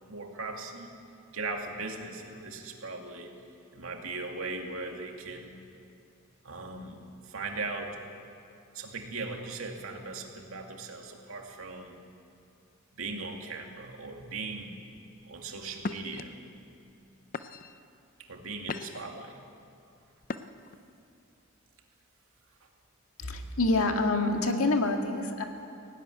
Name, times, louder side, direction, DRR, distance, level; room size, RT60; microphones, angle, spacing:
voice 1, 0.1-0.9 1.3-3.3 3.7-5.6 6.4-7.0 7.2-8.0 8.7-12.0 13.0-14.8 15.2-16.3 18.2-19.4, right 3 dB, 75° right, 2 dB, 2.3 m, -38 dB
sound 1, 15.0-15.2 15.8-16.2 16.9-17.0 17.3-17.8 18.3-19.1 20.2-20.8, left 3 dB, 40° left, 0.6 m, -38 dB
voice 2, 23.2-25.5, left 2 dB, 90° left, 4 dB, 1.9 m, -27 dB
17.0 x 15.5 x 9.9 m, 2.6 s
head